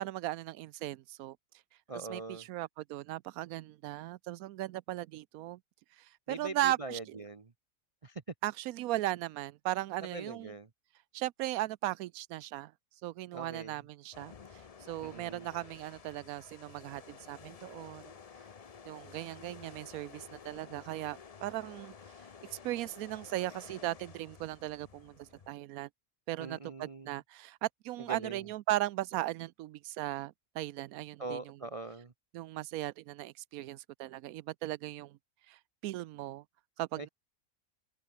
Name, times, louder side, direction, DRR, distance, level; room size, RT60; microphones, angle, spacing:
voice 1, 0.0-1.4 1.9-5.6 6.0-7.0 8.4-10.5 11.1-12.7 13.0-14.3 14.8-18.1 18.9-21.9 22.5-25.9 26.3-31.5 32.3-35.2 35.5-36.4 36.8-37.1, right 15 dB, 80° right, 1.0 m, -37 dB
voice 2, 1.9-2.5 6.3-7.5 8.0-8.2 10.0-10.7 13.3-13.8 15.0-15.5 26.4-27.1 28.1-28.5 31.2-32.1 37.0-37.1, right 3 dB, 30° right, 0.8 m, -42 dB
sound 1, 14.1-25.5, left 6 dB, 40° left, 0.6 m, -52 dB
omnidirectional pair, 1.5 m